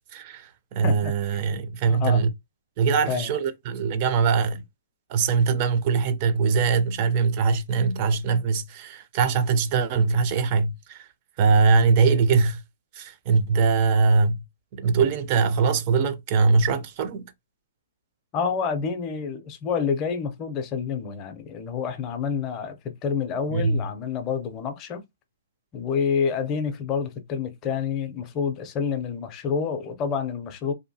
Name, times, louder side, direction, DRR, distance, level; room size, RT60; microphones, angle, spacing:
voice 1, 0.0-2.3 2.8-4.6 5.1-11.1 11.4-12.6 12.9-14.4 14.7-17.3 23.5-23.8, right 5 dB, 30° right, 0.4 m, -22 dB
voice 2, 1.9-2.2 3.1-3.3 18.3-25.0 25.7-30.7, left 6 dB, 20° left, 0.5 m, -28 dB
2.6 x 2.4 x 2.7 m
hypercardioid pair, 160°, 0 cm